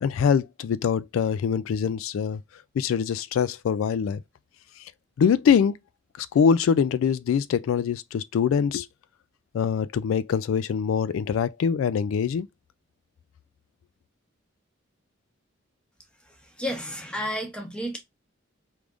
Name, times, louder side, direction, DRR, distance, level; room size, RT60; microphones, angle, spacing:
voice 1, 0.0-2.4 2.7-4.2 4.8-4.9 5.2-5.8 6.2-8.9 9.5-12.5, left 7 dB, 80° left, 0.3 m, -23 dB
voice 2, 16.6-18.0, equal, 5° left, 0.9 m, -31 dB
4.7 x 3.5 x 2.4 m
head